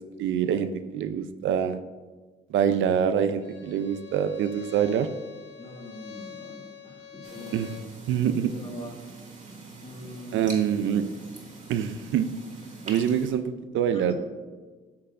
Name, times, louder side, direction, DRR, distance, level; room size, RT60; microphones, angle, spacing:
voice 1, 0.2-1.8 2.5-5.1 7.5-7.8 8.1-8.5 10.3-11.0 11.7-12.3 12.9-14.1, right 8 dB, 75° right, 10 dB, 0.5 m, -25 dB
Bowed string instrument, 3.4-7.9, left 8 dB, 70° left, 0.8 m, -45 dB
voice 2, 5.6-7.6 8.5-8.9 9.8-10.5 13.9-14.1, equal, 30° left, 0 dB, 1.7 m, -42 dB
sound 1, 7.2-13.3, right 3 dB, 40° right, 2.2 m, -44 dB
9.5 x 6.6 x 2.5 m, 1.4 s
cardioid pair, 90°, 20 cm